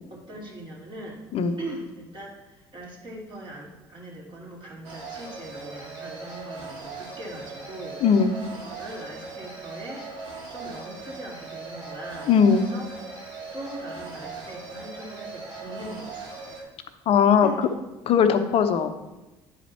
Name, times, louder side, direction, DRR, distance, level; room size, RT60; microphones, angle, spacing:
voice 1, 0.1-1.2 1.6-8.0 8.5-10.1 10.5-12.9 13.5-16.3 17.4-17.6, right 1 dB, 45° right, -3 dB, 2.9 m, -40 dB
sound 1, 4.8-16.6, right 4 dB, 75° right, 1.8 m, -39 dB
voice 2, 8.0-8.3 12.3-12.6 17.1-17.5 18.1-18.9, left 7 dB, 55° left, 8 dB, 0.7 m, -19 dB
10.0 x 4.3 x 4.3 m, 1.1 s
hypercardioid pair, 70°, 12 cm